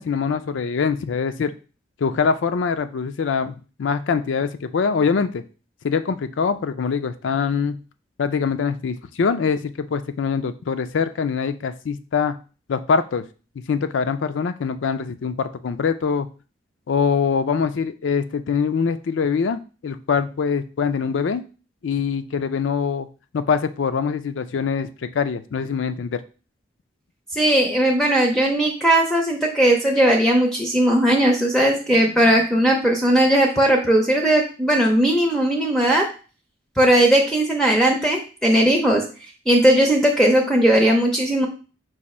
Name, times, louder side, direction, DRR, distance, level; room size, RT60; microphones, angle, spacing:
voice 1, 0.0-1.5 2.0-5.4 5.8-7.8 8.2-12.4 12.7-13.2 13.7-16.3 16.9-21.4 21.8-23.1 23.3-26.2, left 5 dB, 85° left, 10 dB, 0.4 m, -23 dB
voice 2, 27.3-36.1 36.8-39.1 39.5-41.5, right 1 dB, 5° left, 1 dB, 0.5 m, -18 dB
4.8 x 2.6 x 4.1 m, 0.35 s
head